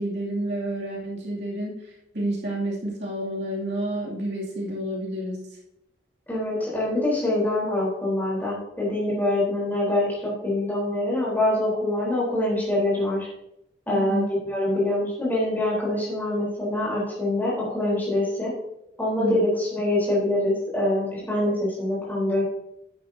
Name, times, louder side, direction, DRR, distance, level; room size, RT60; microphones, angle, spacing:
voice 1, 0.0-5.4 13.9-14.3 19.2-19.4, right 1 dB, 65° right, -5 dB, 2.7 m, -29 dB
voice 2, 6.3-13.3 13.9-18.5 19.0-22.4, left 1 dB, 10° left, -7 dB, 3.9 m, -25 dB
10.5 x 9.7 x 2.8 m, 0.84 s
head